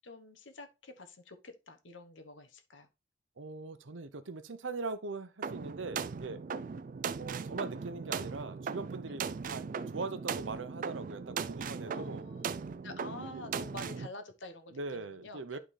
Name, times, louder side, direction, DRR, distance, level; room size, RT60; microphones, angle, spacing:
voice 1, 0.0-2.9 11.9-12.5 12.8-15.6, left 2 dB, 80° left, 1.1 m, -48 dB
voice 2, 3.4-6.4 7.2-12.3 13.3-13.4 14.7-15.6, right 3 dB, 85° right, 0.8 m, -41 dB
sound 1, 5.4-14.1, right 6 dB, 45° right, 0.3 m, -38 dB
11.5 x 3.8 x 3.3 m
head